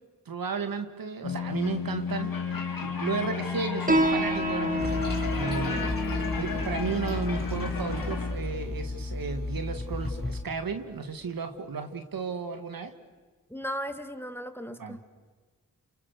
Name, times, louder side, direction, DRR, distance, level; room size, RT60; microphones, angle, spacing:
voice 1, 0.2-2.3 2.8-5.9 6.4-12.9 14.8-15.0, right 5 dB, 90° right, 8 dB, 1.8 m, -34 dB
sound 1, 1.2-8.3, left 6 dB, 80° left, 2.9 m, -33 dB
Piano, 3.9-10.9, right 1 dB, 25° right, 1.5 m, -32 dB
Toilet flush, 4.8-10.4, left 2 dB, 30° left, 5.0 m, -33 dB
voice 2, 5.6-6.0 13.5-15.0, equal, 5° left, 8 dB, 2.2 m, -37 dB
29.5 x 28.5 x 6.6 m, 1.4 s
cardioid pair, 50°, 34 cm